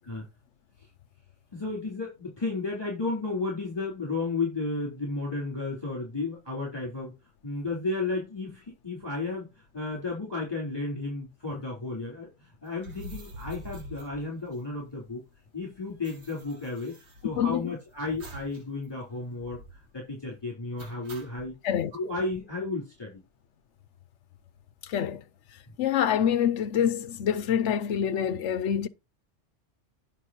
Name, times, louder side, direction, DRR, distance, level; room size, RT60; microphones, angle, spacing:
voice 1, 1.5-7.1 7.4-15.2 15.5-17.0 17.2-21.6 21.9-23.2, left 3 dB, 20° left, 3.8 m, -33 dB
sound 1, 12.8-15.0 15.3-15.4 15.6-17.7 18.2-18.6 18.9-19.0 19.4-19.9 20.8-21.5, right 1 dB, 60° right, 2.3 m, -46 dB
voice 2, 17.4-17.7 21.6-21.9 24.8-25.2 25.8-28.9, left 9 dB, 75° left, 1.1 m, -26 dB
9.8 x 5.8 x 4.3 m
omnidirectional pair, 1.2 m